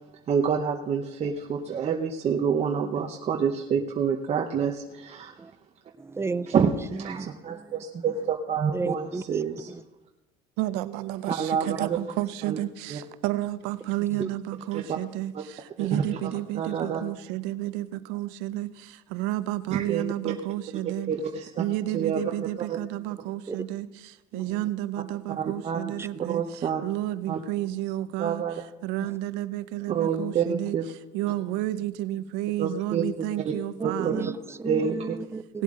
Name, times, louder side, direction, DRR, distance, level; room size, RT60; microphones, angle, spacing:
voice 1, 0.3-5.3 6.5-9.7 11.3-12.0 12.5-12.6 12.9-13.0 14.9-15.0 15.3-15.4 15.8-17.0 19.7-20.4 21.1-21.6 21.9-22.2 22.7-22.8 25.4-26.8 27.3-27.4 28.2-28.6 29.9-30.9 32.6-33.5 33.8-34.1 34.6-35.2, right 7 dB, 40° right, 0.9 m, -28 dB
voice 2, 6.0-7.8 8.7-9.8 14.2-14.3 20.3-20.4 23.5-23.6 24.3-24.7 26.0-26.1 29.0-29.1 33.8-35.6, right 4 dB, 15° right, 0.5 m, -34 dB
voice 3, 10.6-21.1 21.6-23.9 24.3-26.4 26.8-28.4 28.8-30.8 31.1-34.3 35.5-35.6, right 15 dB, 85° right, 0.7 m, -31 dB
18.0 x 7.7 x 3.8 m
cardioid pair, 105°, 17 cm